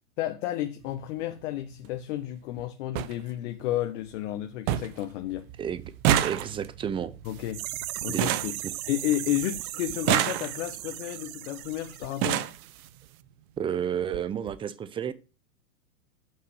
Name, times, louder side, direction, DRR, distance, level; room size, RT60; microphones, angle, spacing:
voice 1, 0.2-5.5 7.2-7.6 8.0-8.5 8.9-12.4, left 14 dB, 55° left, 1.3 m, -32 dB
sound 1, 0.8-1.0 2.2-2.3 2.6-2.7 2.9-3.1 3.6-4.1 4.3-4.4 4.7-5.0 5.3-9.3 9.9-10.9 11.7-11.8 12.0-12.6 13.6-13.7 14.0-14.2 14.5-14.6, right 12 dB, 45° right, 1.0 m, -28 dB
voice 2, 6.2-7.1 8.1-8.2 13.6-15.1, right 8 dB, 10° right, 0.5 m, -31 dB
sound 2, 7.2-12.9 13.1-13.2, right 15 dB, 65° right, 0.7 m, -38 dB
8.0 x 5.8 x 6.3 m
hypercardioid pair, 120°, 45 cm